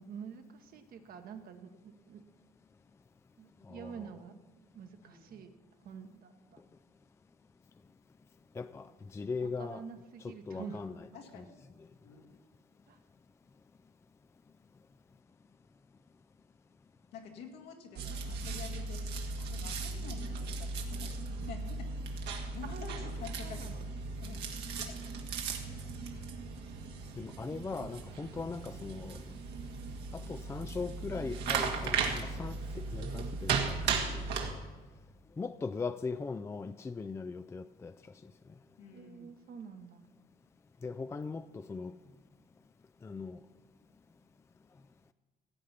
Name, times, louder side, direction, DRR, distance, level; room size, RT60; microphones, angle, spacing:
voice 1, 0.0-2.2 3.4-4.3 4.7-5.5 5.8-6.6 9.4-10.8 12.9-13.0 22.6-23.9 24.6-24.7 38.9-40.1, right 7 dB, 60° right, 1.3 m, -48 dB
voice 2, 3.6-4.0 8.5-9.8 10.2-11.0 11.3-11.4 20.0-20.1 27.2-29.2 30.1-34.5 35.4-37.9 38.2-38.3 40.8-42.0 43.0-43.4, left 4 dB, 15° left, 0.4 m, -40 dB
voice 3, 5.0-5.4 10.5-11.6 12.0-12.4 17.1-23.7 24.2-25.0 25.6-25.9 38.8-39.3, left 6 dB, 85° left, 2.1 m, -49 dB
sound 1, 18.0-34.5, right 4 dB, 80° right, 1.8 m, -37 dB
16.5 x 8.4 x 5.8 m
cardioid pair, 110°, 17 cm